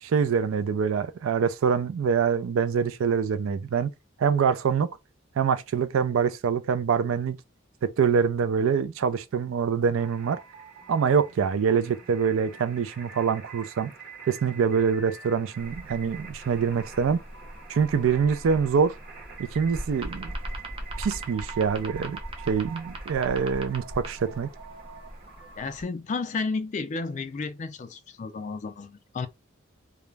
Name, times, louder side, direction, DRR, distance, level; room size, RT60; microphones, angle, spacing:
voice 1, 0.0-3.9 4.2-4.9 5.4-7.4 7.8-10.4 10.9-13.9 14.3-17.2 17.7-19.0 19.5-20.4 21.0-22.2 22.5-24.5, right 6 dB, 80° right, 0.3 m, -25 dB
sound 1, 9.9-25.8, right 6 dB, 45° right, 1.1 m, -46 dB
sound 2, 15.6-25.8, right 1 dB, 25° right, 0.5 m, -40 dB
voice 2, 25.6-29.3, left 4 dB, 35° left, 0.3 m, -32 dB
2.3 x 2.0 x 3.1 m
head